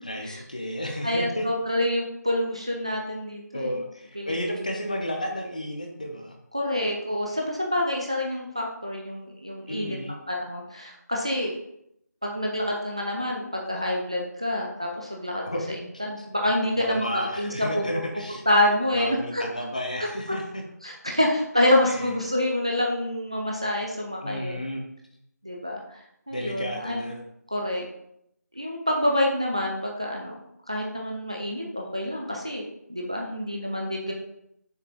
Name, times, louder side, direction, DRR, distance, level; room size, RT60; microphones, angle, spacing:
voice 1, 0.0-1.5 3.5-6.4 9.7-10.2 15.4-15.8 16.2-16.3 16.8-18.4 18.9-20.6 21.9-22.0 24.2-24.9 26.3-27.2, equal, 25° left, 2 dB, 0.8 m, -32 dB
voice 2, 1.0-3.8 4.2-4.3 6.5-10.0 10.3-11.5 12.2-17.1 17.4-17.8 18.5-19.4 20.8-24.6 25.4-26.0 26.3-27.1 27.5-27.9 28.6-30.4 30.7-34.1, left 1 dB, 20° right, -1 dB, 0.5 m, -27 dB
6.8 x 5.0 x 4.1 m, 0.75 s
figure-of-eight pair, 180°, 10 cm